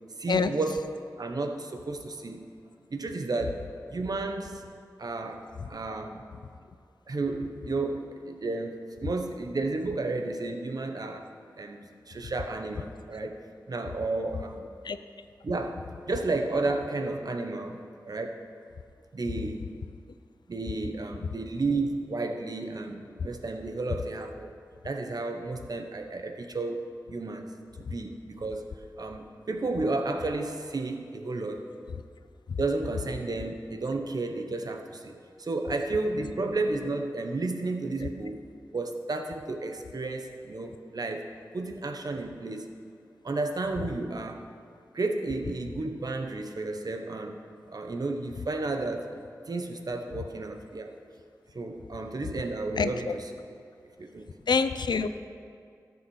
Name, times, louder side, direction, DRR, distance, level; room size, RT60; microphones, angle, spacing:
voice 1, 0.1-0.9 1.2-2.4 2.9-3.6 3.9-4.6 5.0-6.2 7.1-11.3 11.6-13.4 13.7-14.7 15.4-17.8 18.1-18.4 19.1-19.7 20.5-24.5 24.8-27.5 27.9-28.7 29.0-31.6 32.6-35.1 35.4-38.4 38.7-41.2 41.5-42.7 43.2-44.4 44.9-49.0 49.5-50.9 51.5-53.3 54.0-54.3, right 3 dB, 60° right, 5 dB, 1.1 m, -32 dB
voice 2, 52.8-53.1 54.5-55.1, left 5 dB, 85° left, 11 dB, 0.5 m, -25 dB
13.5 x 7.1 x 6.3 m, 2.3 s
wide cardioid pair, 70°, 7 cm